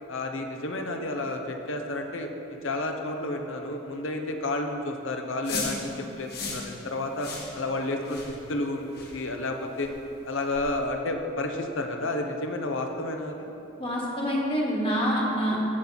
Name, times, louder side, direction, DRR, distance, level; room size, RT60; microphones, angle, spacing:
voice 1, 0.1-9.9 10.2-13.5, left 2 dB, 65° left, 4 dB, 0.9 m, -31 dB
sound 1, 5.4-5.8 6.3-6.7 7.2-7.5 8.0-8.3 8.9-9.1 9.8-9.9 10.5-10.7, left 3 dB, 50° left, 1.6 m, -34 dB
voice 2, 13.8-15.6, equal, 25° left, -3 dB, 1.5 m, -26 dB
17.0 x 5.9 x 4.0 m, 2.9 s
head